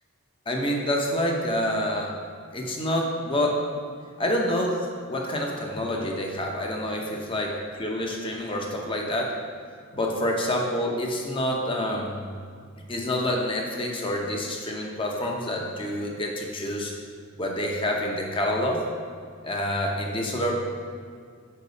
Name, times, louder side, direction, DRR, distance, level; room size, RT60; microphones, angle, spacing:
voice 1, 0.5-2.1 2.5-3.6 4.2-9.4 9.9-12.2 12.9-16.9 17.4-18.8 19.4-20.6, left 1 dB, 25° left, 0 dB, 0.8 m, -27 dB
6.7 x 5.9 x 4.1 m, 2.1 s
head